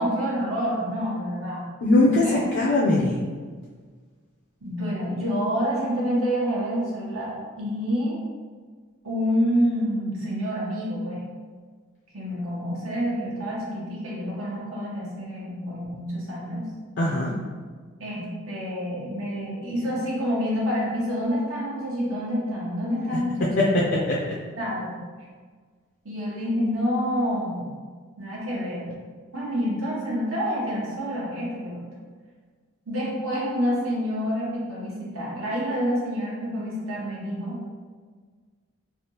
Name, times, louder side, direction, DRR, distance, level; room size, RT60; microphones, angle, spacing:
voice 1, 0.0-1.6 2.0-2.4 4.6-7.3 7.6-8.2 9.0-11.2 12.1-16.7 18.0-23.5 24.6-25.0 26.0-27.7 28.2-28.8 29.3-31.8 32.9-37.6, equal, 75° right, -6 dB, 1.0 m, -27 dB
voice 2, 1.8-3.2 17.0-17.3 23.6-24.2, left 2 dB, 55° left, -4 dB, 0.4 m, -21 dB
3.3 x 2.4 x 2.7 m, 1.5 s
head